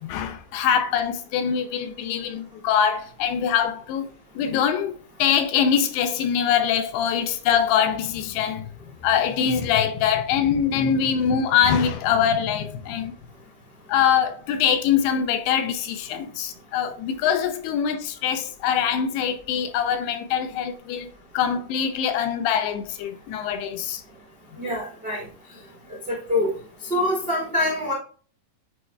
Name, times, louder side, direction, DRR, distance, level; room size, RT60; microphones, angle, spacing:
voice 1, 0.0-4.1 4.4-8.7 9.0-13.1 13.9-24.0, left 8 dB, 80° left, 2.5 m, -23 dB
voice 2, 24.6-25.2 26.1-26.5 26.9-27.9, left 1 dB, 75° right, 0.5 m, -24 dB
10.5 x 4.2 x 2.3 m
omnidirectional pair, 4.9 m